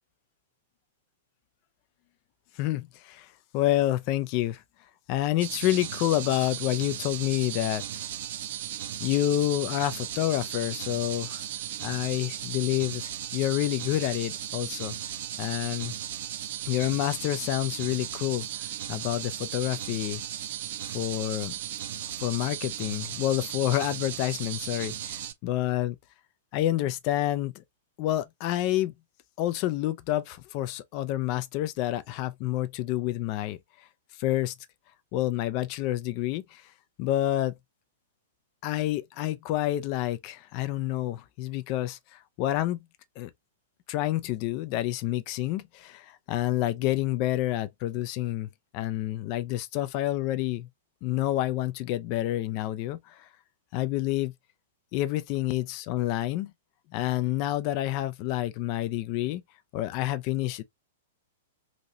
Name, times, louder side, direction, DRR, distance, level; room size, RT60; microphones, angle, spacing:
voice 1, 2.6-4.6 5.1-8.1 9.0-11.4 11.8-15.0 15.4-15.9 16.6-20.2 20.8-21.5 22.2-26.0 26.5-27.6 28.0-28.9 29.4-33.6 34.2-34.5 35.1-36.6 37.0-37.5 38.6-42.8 43.2-43.3 43.9-48.5 48.7-50.7 51.0-53.3 53.7-54.3 54.9-56.5 56.9-59.4 59.7-60.6, left 14 dB, 40° left, 0.4 m, -28 dB
sound 1, 5.4-25.3, right 11 dB, 50° right, 0.4 m, -36 dB
2.9 x 2.8 x 2.6 m
figure-of-eight pair, 105°, 0 cm